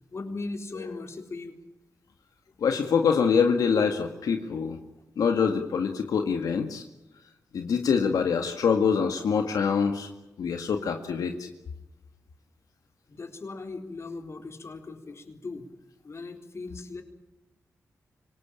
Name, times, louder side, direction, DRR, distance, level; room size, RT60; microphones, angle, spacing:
voice 1, 0.1-1.6 13.1-15.7 16.0-17.0, left 3 dB, 50° left, 6 dB, 4.0 m, -38 dB
voice 2, 2.6-4.8 5.2-6.8 7.5-10.1 10.4-11.5, left 6 dB, 90° left, 5 dB, 1.9 m, -25 dB
26.0 x 19.0 x 8.8 m, 0.96 s
cardioid pair, 75°, 6 cm